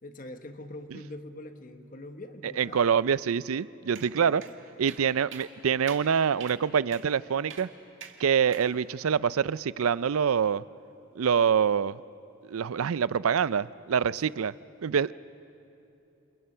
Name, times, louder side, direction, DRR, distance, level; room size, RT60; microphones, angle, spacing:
voice 1, 0.0-2.8 4.0-4.5 14.2-14.4, left 1 dB, 40° left, 7 dB, 1.2 m, -44 dB
voice 2, 2.6-4.4 4.8-7.7 8.2-10.6 11.2-12.0 12.5-14.5 14.8-15.1, right 7 dB, 90° right, 19 dB, 0.5 m, -25 dB
sound 1, 4.0-4.1 4.4-4.5 4.9-5.0 5.3-5.5 5.9-6.0 6.4-6.6 6.9-7.1 7.5-7.7 8.0-8.2 8.5-8.7, right 8 dB, 65° right, 1.8 m, -43 dB
29.0 x 27.0 x 5.6 m, 2.9 s
head